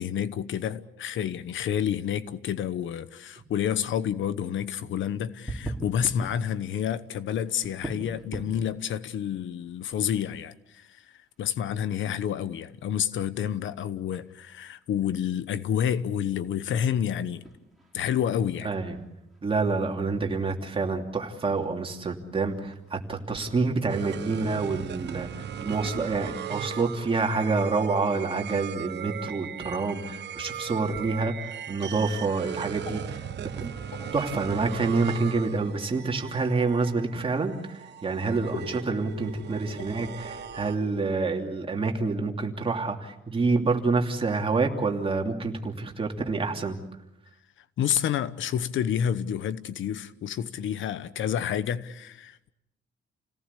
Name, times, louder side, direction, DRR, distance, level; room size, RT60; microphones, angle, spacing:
voice 1, 0.0-11.0 11.4-17.4 17.9-18.7 47.8-52.5, left 9 dB, 70° left, 1.1 m, -29 dB
sound 1, 5.5-23.9, right 1 dB, ahead, 4.9 m, -46 dB
voice 2, 18.6-19.0 19.4-33.7 34.1-46.8, right 4 dB, 25° right, 2.9 m, -27 dB
sound 2, 23.9-41.2, right 9 dB, 60° right, 1.1 m, -38 dB
sound 3, 28.6-42.4, left 5 dB, 90° left, 4.9 m, -47 dB
29.0 x 18.0 x 8.4 m
cardioid pair, 140°, 21 cm